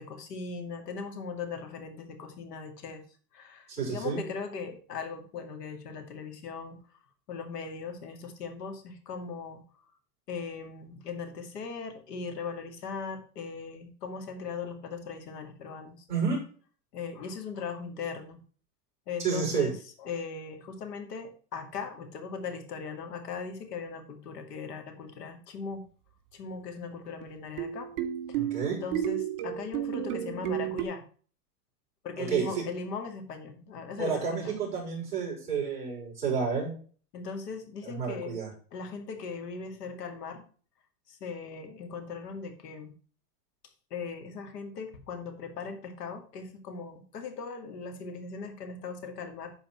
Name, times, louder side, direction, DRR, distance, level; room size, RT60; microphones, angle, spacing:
voice 1, 0.0-3.0 3.3-6.8 7.3-9.6 10.3-16.0 16.9-18.4 19.1-25.8 26.3-27.9 28.3-28.4 28.7-31.0 32.0-34.5 37.1-38.4 38.7-40.5 41.1-42.9 43.9-49.5, left 5 dB, 85° left, 6 dB, 2.4 m, -39 dB
voice 2, 3.7-4.2 16.1-16.4 19.2-19.7 28.3-28.8 32.2-32.6 34.0-36.7 37.8-38.5, right 5 dB, 15° right, -4 dB, 5.2 m, -30 dB
sound 1, 27.2-30.8, right 11 dB, 50° right, 2.0 m, -32 dB
11.5 x 4.4 x 4.5 m, 0.41 s
supercardioid pair, 160°, 47 cm